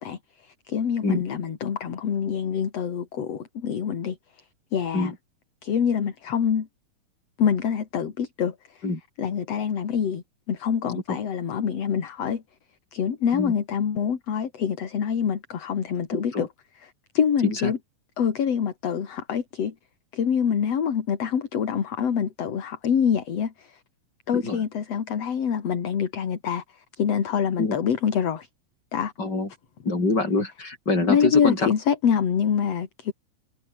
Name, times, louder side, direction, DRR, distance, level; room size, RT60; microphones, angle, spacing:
voice 1, 0.0-4.2 4.7-5.1 5.6-6.7 7.4-8.5 9.2-12.4 12.9-16.5 16.8-17.8 18.2-19.7 20.1-23.8 24.3-26.6 27.0-28.5 28.9-29.1 31.1-33.1, left 7 dB, 50° left, 3.3 m, -25 dB
voice 2, 16.1-16.5 17.4-17.7 24.3-24.6 27.6-27.8 29.2-29.5 29.8-31.7, left 3 dB, 30° left, 6.6 m, -25 dB
omnidirectional pair, 3.8 m